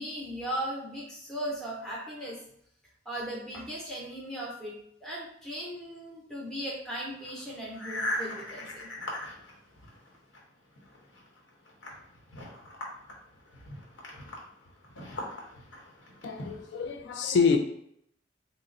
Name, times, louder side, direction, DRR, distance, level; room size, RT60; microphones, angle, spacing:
voice 1, 0.0-2.4 3.1-8.9, right 1 dB, 5° left, -5 dB, 0.6 m, -37 dB
sound 1, 7.1-10.4 10.7-16.9, left 1 dB, 90° left, 1.0 m, -40 dB
voice 2, 16.2-17.6, left 5 dB, 70° left, 5 dB, 0.3 m, -26 dB
3.6 x 2.0 x 3.9 m, 0.70 s
head